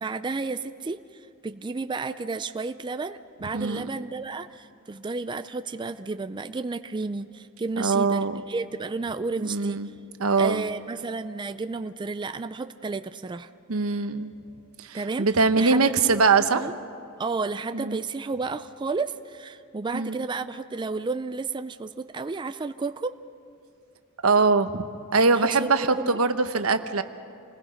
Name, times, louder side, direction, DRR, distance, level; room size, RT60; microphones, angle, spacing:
voice 1, 0.0-9.8 10.3-13.5 14.9-15.3 15.6-16.1 16.5-16.7 17.2-23.2 25.3-26.2, right 3 dB, 20° right, 10 dB, 0.4 m, -32 dB
voice 2, 3.5-3.9 7.8-8.4 9.4-9.9 10.2-10.6 13.7-14.3 14.8-16.6 17.7-18.0 19.9-20.2 24.2-24.8 25.1-27.0, right 4 dB, 85° right, 9 dB, 1.0 m, -22 dB
28.5 x 20.0 x 5.1 m, 2.5 s
head